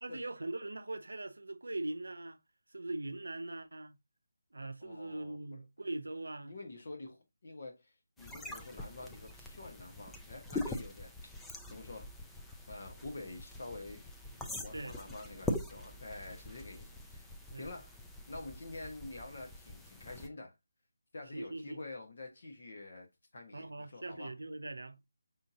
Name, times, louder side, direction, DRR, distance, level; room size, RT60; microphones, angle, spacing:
voice 1, 0.0-2.4 2.7-4.0 4.5-6.6 14.7-15.0 17.5-17.7 21.3-21.8 23.5-25.0, right 2 dB, 90° right, 0.5 m, -41 dB
voice 2, 4.8-5.6 6.4-11.1 11.7-12.1 12.7-17.3 17.6-18.0 18.3-20.5 21.1-23.1 23.3-24.3, left 2 dB, 55° left, 1.1 m, -47 dB
sound 1, 8.2-20.3, left 2 dB, 5° left, 0.3 m, -43 dB
5.5 x 2.8 x 2.6 m
figure-of-eight pair, 165°, 0 cm